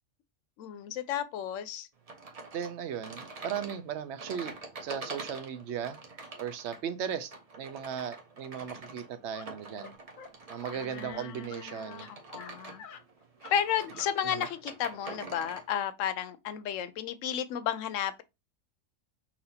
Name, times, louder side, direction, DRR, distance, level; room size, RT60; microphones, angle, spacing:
voice 1, 0.6-1.9 10.7-12.8 13.5-18.2, left 9 dB, 75° left, 0.9 m, -33 dB
sound 1, 2.1-15.7, right 3 dB, 35° right, 0.6 m, -45 dB
voice 2, 2.5-4.5 4.8-6.0 6.4-9.9 10.5-12.1 14.4-14.5, right 8 dB, 65° right, 0.8 m, -37 dB
sound 2, 9.3-9.5 9.7-9.9 10.2-10.3 10.6-11.6 11.9-12.5 12.8-13.0 13.4-13.6 13.9-14.1, left 7 dB, 60° left, 0.5 m, -48 dB
5.8 x 2.6 x 2.8 m
omnidirectional pair, 1.4 m